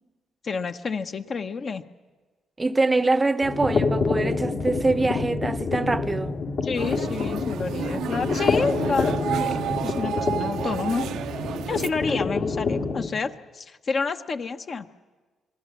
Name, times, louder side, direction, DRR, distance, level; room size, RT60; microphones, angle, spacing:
voice 1, 0.4-1.8 6.6-11.1 11.7-14.9, left 4 dB, 45° left, 0.9 m, -29 dB
voice 2, 2.6-6.4 12.1-12.2, right 3 dB, 20° right, 0.7 m, -24 dB
sound 1, 3.4-13.1, left 4 dB, 60° left, 2.2 m, -27 dB
sound 2, 6.7-11.9, right 10 dB, 80° right, 0.7 m, -31 dB
28.5 x 21.0 x 7.4 m
cardioid pair, 90°, 0 cm